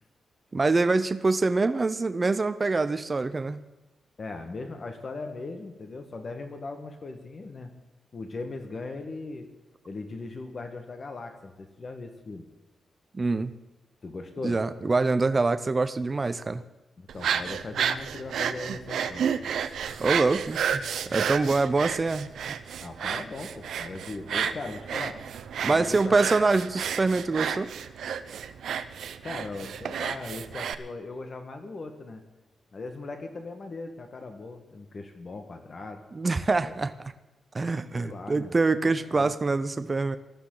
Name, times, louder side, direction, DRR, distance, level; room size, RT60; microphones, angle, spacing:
voice 1, 0.5-3.6 13.1-13.5 14.4-16.6 20.0-22.6 25.6-27.7 36.1-36.9 37.5-40.2, right 3 dB, 25° right, 11 dB, 0.6 m, -25 dB
voice 2, 4.2-7.7 8.1-9.5 9.8-12.4 14.0-14.6 17.0-19.3 22.8-25.2 25.6-26.1 29.2-32.2 32.7-36.0 36.6-36.7 37.9-38.5 38.8-39.3, left 3 dB, 40° left, 6 dB, 1.5 m, -39 dB
sound 1, 17.1-30.7, right 8 dB, 90° right, 0.6 m, -31 dB
19.0 x 13.0 x 3.9 m, 1.1 s
wide cardioid pair, 125°, 0 cm